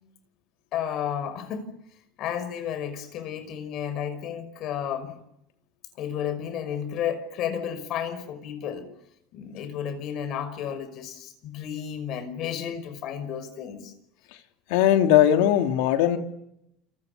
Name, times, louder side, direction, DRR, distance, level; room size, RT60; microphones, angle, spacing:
voice 1, 0.7-1.7 2.2-5.1 6.0-8.9 9.3-13.9, left 9 dB, 50° left, 13 dB, 5.5 m, -32 dB
voice 2, 14.7-16.2, left 11 dB, 80° left, 6 dB, 3.2 m, -19 dB
28.5 x 28.5 x 6.8 m, 0.82 s
cardioid pair, 140°, 0 cm